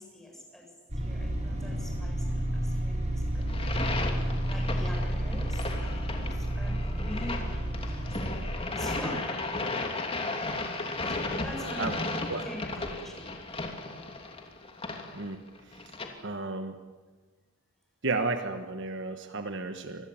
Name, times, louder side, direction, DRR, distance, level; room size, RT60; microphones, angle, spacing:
voice 1, 0.0-9.6 10.1-10.8 11.1-11.9 12.3-13.6, left 1 dB, ahead, 0 dB, 7.2 m, -45 dB
sound 1, 0.9-8.5, right 1 dB, 30° right, 6.5 m, -31 dB
sound 2, 3.4-16.1, left 2 dB, 25° left, 2.9 m, -35 dB
voice 2, 16.2-16.7 18.0-20.1, right 3 dB, 55° right, 8 dB, 1.3 m, -32 dB
27.0 x 21.5 x 8.9 m, 1.4 s
head